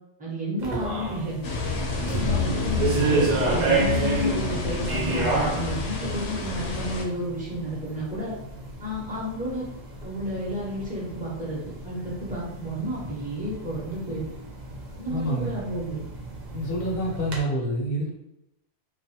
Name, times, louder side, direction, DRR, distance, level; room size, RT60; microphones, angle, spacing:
voice 1, 0.2-1.5 1.9-8.3 8.8-9.6 10.0-14.3 15.0-16.0, right 1 dB, 10° right, -6 dB, 0.7 m, -31 dB
sound 1, 0.6-17.4, right 2 dB, 50° right, 0.7 m, -31 dB
sound 2, 1.4-7.0, left 3 dB, 90° left, 1.0 m, -28 dB
voice 2, 15.1-15.5 16.5-18.1, equal, 55° left, -2 dB, 0.9 m, -27 dB
2.5 x 2.3 x 2.7 m, 0.87 s
omnidirectional pair, 1.2 m